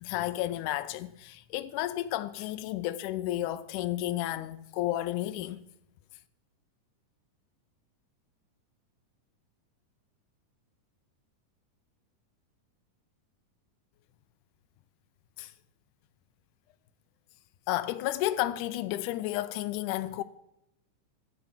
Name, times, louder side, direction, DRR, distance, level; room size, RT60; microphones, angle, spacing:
voice 1, 0.0-5.6 15.4-15.5 17.7-20.2, left 14 dB, 85° left, 2.0 m, -32 dB
12.5 x 8.6 x 5.7 m
omnidirectional pair, 3.6 m